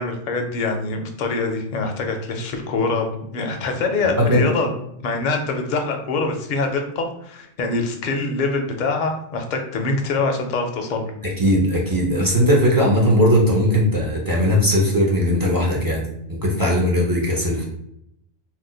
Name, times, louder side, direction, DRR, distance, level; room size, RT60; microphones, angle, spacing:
voice 1, 0.0-4.7 5.0-11.1, left 3 dB, 55° left, 3 dB, 0.5 m, -24 dB
voice 2, 4.0-4.4 11.4-16.0 16.3-17.6, equal, 35° right, -3 dB, 0.3 m, -18 dB
2.7 x 2.1 x 3.8 m, 0.77 s
omnidirectional pair, 1.3 m